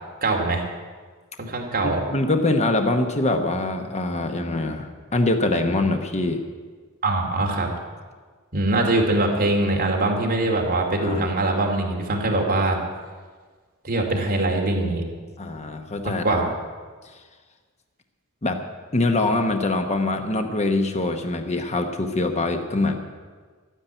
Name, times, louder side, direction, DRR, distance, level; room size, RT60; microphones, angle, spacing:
voice 1, 0.2-0.6 1.4-2.0 7.0-7.7 8.5-12.8 13.8-15.0 16.2-16.5, right 2 dB, 40° right, 0 dB, 2.4 m, -22 dB
voice 2, 1.8-6.4 11.0-11.3 15.4-16.4 17.0-17.2 18.4-18.6 18.9-23.0, left 2 dB, 30° left, 6 dB, 1.0 m, -24 dB
12.5 x 10.0 x 9.1 m, 1.5 s
head